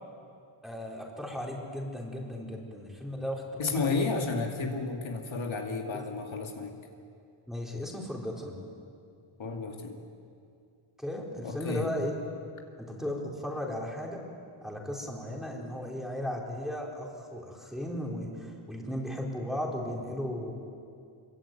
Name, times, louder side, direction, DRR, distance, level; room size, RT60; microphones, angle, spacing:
voice 1, 0.6-4.2 7.5-8.5 11.0-12.2 12.8-14.2 14.6-20.5, left 1 dB, ahead, -1 dB, 4.2 m, -36 dB
voice 2, 3.6-6.7 9.4-10.0 11.4-11.9, left 4 dB, 65° left, 2 dB, 2.6 m, -32 dB
27.5 x 22.5 x 9.2 m, 2.4 s
wide cardioid pair, 180°, 50 cm